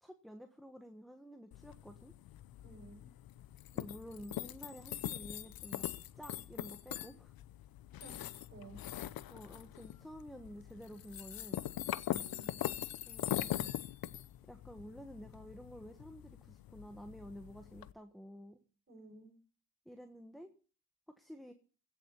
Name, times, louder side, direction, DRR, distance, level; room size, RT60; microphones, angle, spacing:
voice 1, 0.0-2.1 3.7-5.9 6.1-7.3 9.3-11.6 13.1-13.7 14.5-18.6 19.8-20.5 21.1-21.5, equal, ahead, 6 dB, 1.4 m, -51 dB
sound 1, 1.5-17.9, left 13 dB, 85° left, 0.7 m, -42 dB
voice 2, 2.6-3.1 8.0-8.8 12.0-12.6 18.9-19.3, right 3 dB, 40° right, 0 dB, 7.4 m, -54 dB
16.5 x 7.2 x 7.0 m, 0.38 s
cardioid pair, 105°, 35 cm